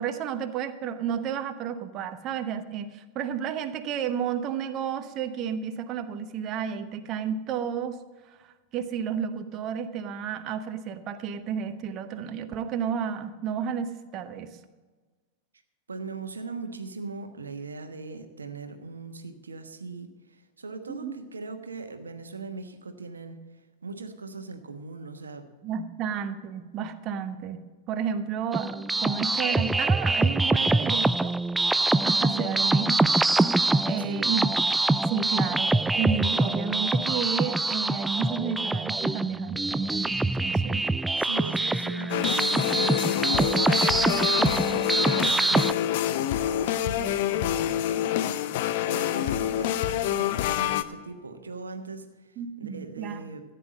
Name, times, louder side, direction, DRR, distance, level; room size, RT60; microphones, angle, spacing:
voice 1, 0.0-8.0 8.4-14.5 20.9-21.2 25.6-31.4 32.0-33.2 33.9-34.7 35.1-40.8 52.4-53.2, right 7 dB, 35° right, 10 dB, 0.9 m, -32 dB
voice 2, 15.9-23.4 23.8-25.5 33.9-34.4 40.4-40.6 41.1-45.8 46.4-47.8 48.9-53.4, right 4 dB, 75° right, 7 dB, 1.2 m, -39 dB
sound 1, 28.5-45.7, right 2 dB, 5° right, 0.3 m, -24 dB
sound 2, 42.1-50.8, left 12 dB, 50° left, 0.6 m, -27 dB
15.0 x 9.2 x 5.1 m, 1.4 s
figure-of-eight pair, 90°, 0 cm